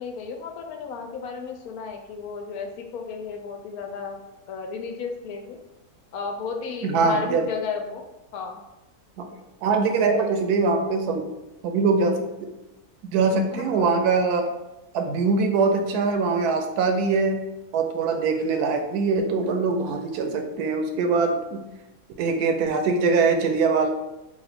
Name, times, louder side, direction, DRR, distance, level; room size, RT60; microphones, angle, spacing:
voice 1, 0.0-4.2 4.5-5.6 6.1-8.0 8.3-8.6 13.5-13.9, left 5 dB, 75° left, 4 dB, 1.0 m, -33 dB
voice 2, 6.8-7.4 9.2-9.3 9.6-11.3 11.6-12.5 13.1-14.5 14.9-17.4 17.7-21.6 22.2-23.9, right 4 dB, 80° right, 5 dB, 1.1 m, -22 dB
3.2 x 2.4 x 4.1 m, 0.98 s
omnidirectional pair, 1.6 m